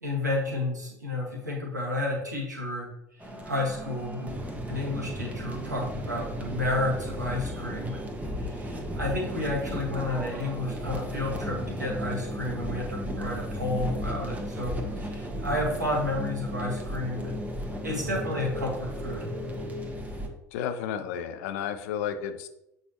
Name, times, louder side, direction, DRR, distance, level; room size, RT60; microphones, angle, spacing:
voice 1, 0.0-4.4 4.7-8.0 8.4-17.3 17.8-19.2, left 1 dB, 85° right, -3 dB, 1.8 m, -31 dB
sound 1, 3.2-20.3, equal, 15° right, 1.2 m, -34 dB
voice 2, 20.5-22.5, left 8 dB, 60° left, 10 dB, 0.7 m, -32 dB
8.1 x 5.3 x 3.0 m, 0.87 s
figure-of-eight pair, 65°, 9 cm